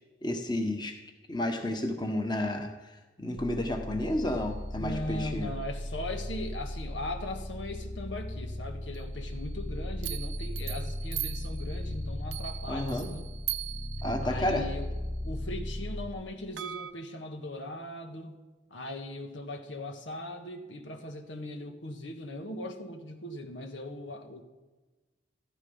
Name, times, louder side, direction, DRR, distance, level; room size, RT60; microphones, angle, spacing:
voice 1, 0.2-1.0 1.3-5.5 12.7-13.1 14.0-14.7, left 1 dB, 25° left, 4 dB, 1.4 m, -31 dB
sound 1, 3.4-16.1, left 1 dB, 50° left, 2.5 m, -37 dB
sound 2, 4.1-4.3 8.9-9.5 10.0-15.1 16.6-16.9, right 14 dB, 90° right, 0.8 m, -40 dB
voice 2, 4.8-13.3 14.2-14.9 15.2-18.4 18.7-24.4, left 1 dB, 90° left, 5 dB, 1.7 m, -39 dB
14.0 x 13.5 x 5.6 m, 1.2 s
head